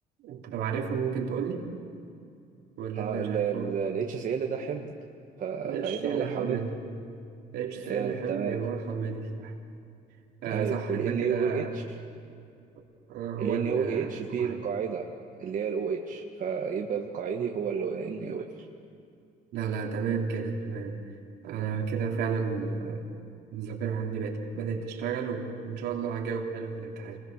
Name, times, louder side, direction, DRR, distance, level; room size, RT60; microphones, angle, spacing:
voice 1, 0.2-1.7 2.8-3.7 5.6-6.7 7.5-9.5 10.4-11.7 13.1-14.6 19.5-21.0 21.4-23.0 23.5-27.2, right 6 dB, 80° right, 1 dB, 3.0 m, -32 dB
voice 2, 2.9-4.9 5.4-6.6 7.9-8.6 10.5-11.8 13.4-15.0 15.4-18.5, right 6 dB, 50° right, 1 dB, 1.6 m, -31 dB
27.5 x 21.0 x 6.7 m, 2.5 s
cardioid pair, 110°, 17 cm